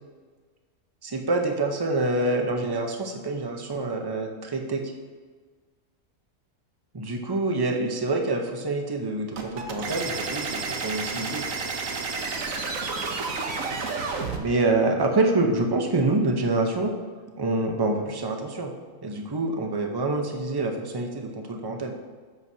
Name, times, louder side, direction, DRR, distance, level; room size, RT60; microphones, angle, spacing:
voice 1, 1.0-4.8 6.9-11.5 14.4-16.9 17.4-18.7 19.0-21.9, right 2 dB, 25° right, 3 dB, 0.6 m, -26 dB
sound 1, 9.4-14.4, right 4 dB, 75° right, 1.3 m, -30 dB
11.0 x 7.4 x 2.8 m, 1.5 s
omnidirectional pair, 1.4 m